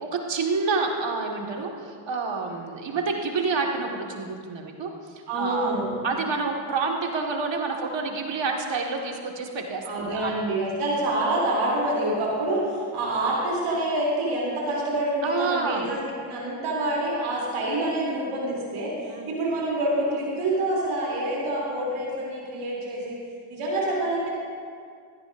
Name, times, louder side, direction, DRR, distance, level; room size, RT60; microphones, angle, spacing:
voice 1, 0.0-5.7 6.0-10.3 15.2-15.9 19.1-19.3, right 4 dB, 60° right, 1 dB, 1.8 m, -28 dB
voice 2, 5.3-6.0 9.8-23.1 23.5-24.3, right 1 dB, 90° right, -5 dB, 3.1 m, -27 dB
15.5 x 15.0 x 2.6 m, 2.2 s
supercardioid pair, 40°, 49 cm